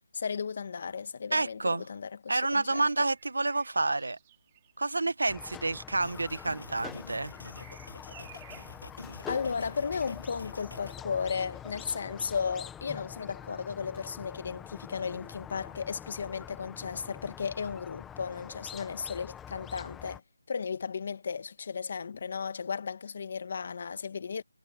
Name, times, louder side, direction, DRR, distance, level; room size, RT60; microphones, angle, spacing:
voice 1, 0.1-3.1 9.3-20.2 20.5-24.4, left 6 dB, 40° left, 1.7 m, -35 dB
voice 2, 1.3-1.8 2.3-4.2 4.8-7.3, right 2 dB, 90° right, 1.4 m, -29 dB
Bird vocalization bird call bird song, 2.4-14.2 15.9-16.1, right 15 dB, 15° right, 3.1 m, -60 dB
Squeak, 5.3-20.2, left 9 dB, 5° left, 1.3 m, -45 dB
sound 1, 6.0-11.0, left 2 dB, 90° left, 7.7 m, -46 dB
figure-of-eight pair, 175°, 0 cm